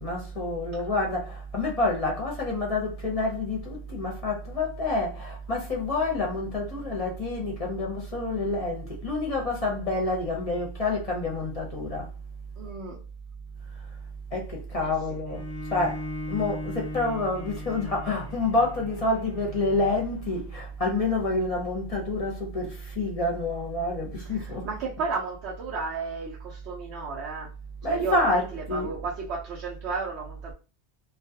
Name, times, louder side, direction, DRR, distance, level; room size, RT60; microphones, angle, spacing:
voice 1, 0.0-12.1 14.3-15.4 15.7-16.0 16.3-24.7 27.8-28.9, left 2 dB, 40° left, 0.7 m, -28 dB
voice 2, 12.6-13.0 14.8-14.9 24.4-27.5 27.9-30.5, right 4 dB, 75° right, 0.9 m, -33 dB
Bowed string instrument, 15.3-20.5, left 1 dB, 10° right, 0.8 m, -39 dB
2.4 x 2.3 x 2.7 m
omnidirectional pair, 1.1 m